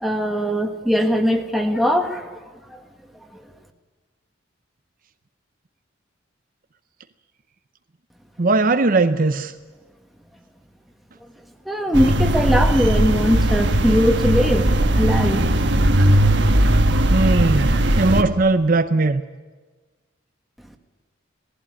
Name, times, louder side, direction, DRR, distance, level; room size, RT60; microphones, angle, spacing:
voice 1, 0.0-2.3 11.7-15.4 15.8-16.1, equal, ahead, 4 dB, 1.6 m, -20 dB
voice 2, 8.4-9.5 17.1-19.2, right 3 dB, 45° right, 9 dB, 0.7 m, -19 dB
sound 1, 11.9-18.2, right 1 dB, 60° right, 1.5 m, -18 dB
18.5 x 15.5 x 9.9 m, 1.3 s
head